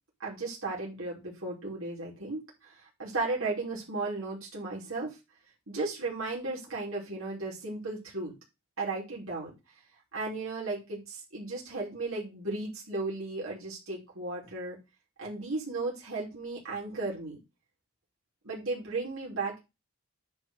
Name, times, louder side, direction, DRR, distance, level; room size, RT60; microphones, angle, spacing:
voice 1, 0.2-5.2 5.7-8.3 8.8-9.5 10.1-14.8 15.2-17.4 18.4-19.6, right 3 dB, 85° right, -4 dB, 3.1 m, -35 dB
9.6 x 3.5 x 6.3 m, 0.25 s
head